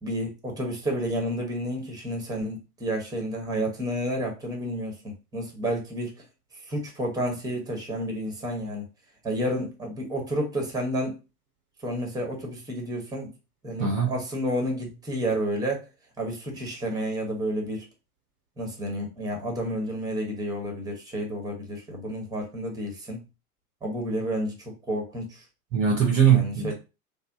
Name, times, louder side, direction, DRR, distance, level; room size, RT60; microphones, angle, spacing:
voice 1, 0.0-6.1 6.7-8.9 9.2-11.2 11.8-13.3 13.6-15.8 16.2-17.8 18.6-23.2 23.8-25.4 26.3-26.7, equal, 10° right, 1.1 m, -30 dB
voice 2, 13.8-14.1 25.7-26.7, right 7 dB, 30° right, 0.8 m, -21 dB
3.2 x 2.1 x 4.0 m
figure-of-eight pair, 90°, 46 cm